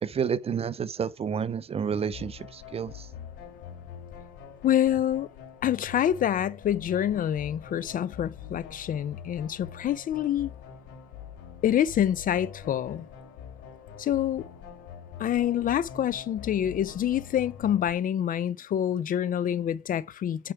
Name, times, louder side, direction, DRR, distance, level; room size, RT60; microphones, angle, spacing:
voice 1, 0.0-3.1, right 7 dB, 35° right, 0.6 m, -30 dB
sound 1, 1.9-17.9, left 7 dB, 90° left, 4.2 m, -44 dB
voice 2, 4.6-5.3 5.6-10.5 11.6-13.1 14.0-14.4 15.2-20.5, left 10 dB, 50° left, 0.7 m, -26 dB
9.0 x 4.9 x 4.8 m
cardioid pair, 100°, 18 cm